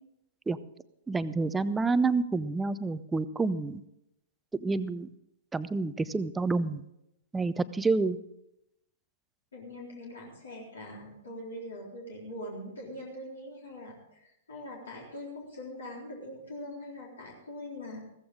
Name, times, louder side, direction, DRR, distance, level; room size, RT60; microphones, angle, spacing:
voice 1, 1.1-3.8 4.6-5.1 5.5-6.8 7.3-8.2, right 3 dB, 10° right, 14 dB, 0.6 m, -28 dB
voice 2, 9.5-18.0, left 1 dB, 65° left, -2 dB, 3.8 m, -42 dB
15.5 x 14.5 x 3.7 m, 0.85 s
figure-of-eight pair, 105°, 0 cm